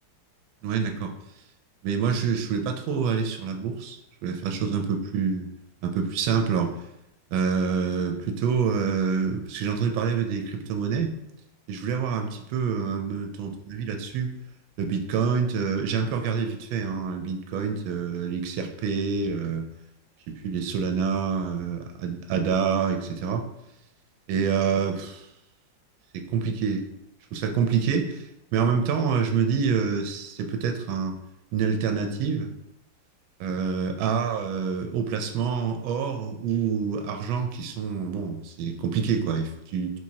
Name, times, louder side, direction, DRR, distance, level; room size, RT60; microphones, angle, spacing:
voice 1, 0.6-1.1 1.8-5.5 5.8-6.8 7.3-11.2 11.7-14.3 14.8-19.7 20.3-23.4 24.3-25.3 26.1-26.8 27.3-28.2 28.5-31.2 31.5-32.5 33.4-40.0, right 6 dB, 80° right, 5 dB, 1.4 m, -27 dB
4.6 x 4.2 x 2.7 m, 0.84 s
omnidirectional pair, 2.1 m